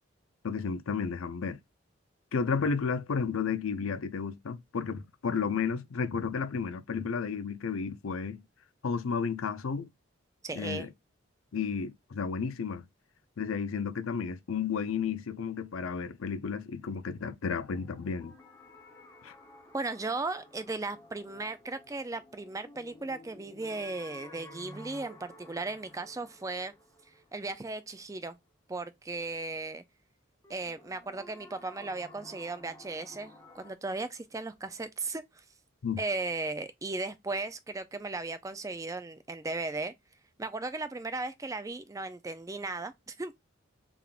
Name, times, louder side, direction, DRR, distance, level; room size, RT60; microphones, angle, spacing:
voice 1, 0.4-1.6 2.3-8.4 8.8-9.9 10.5-10.9 11.5-12.9 13.4-18.4 19.2-19.3 35.8-36.0, left 5 dB, 85° left, 0.5 m, -32 dB
voice 2, 10.4-10.9 19.7-26.7 27.3-28.4 28.7-29.8 30.5-35.4 36.0-39.9 40.4-43.3, right 3 dB, 15° right, 0.3 m, -36 dB
sound 1, 17.5-28.3 30.4-33.7, left 1 dB, 15° left, 0.8 m, -53 dB
3.5 x 3.5 x 2.4 m
head